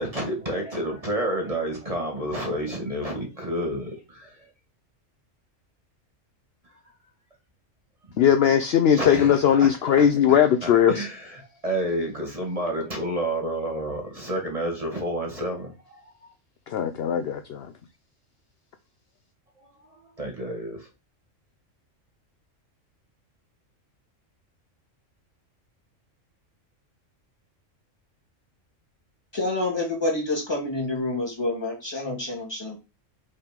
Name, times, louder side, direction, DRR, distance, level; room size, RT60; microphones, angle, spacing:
voice 1, 0.0-3.8 4.1-4.3 8.9-9.7 10.6-16.3 19.6-20.9, right 1 dB, 30° right, 1.7 m, -30 dB
voice 2, 8.2-11.1 16.7-17.7, left 9 dB, 60° left, 0.7 m, -19 dB
voice 3, 29.3-32.8, left 2 dB, 20° left, 2.6 m, -28 dB
5.5 x 3.5 x 5.2 m
omnidirectional pair, 1.3 m